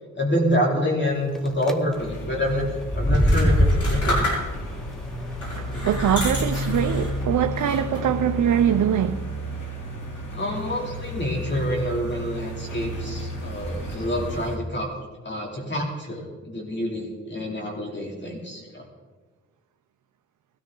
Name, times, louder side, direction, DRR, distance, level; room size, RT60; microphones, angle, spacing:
voice 1, 0.1-2.7 2.9-4.3 10.3-14.9 15.2-18.8, equal, 35° left, 3.0 m, -27 dB
sound 1, 1.3-1.7 2.8-7.2, equal, ahead, 1.0 m, -25 dB
sound 2, 1.9-14.6, equal, 85° left, 3.3 m, -33 dB
sound 3, 3.1-4.8 5.4-7.2 7.6-8.2, left 1 dB, 65° left, 6.1 m, -30 dB
voice 2, 5.5-9.3, right 9 dB, 80° right, 0.6 m, -23 dB
20.5 x 13.5 x 3.8 m
wide cardioid pair, 115°, 31 cm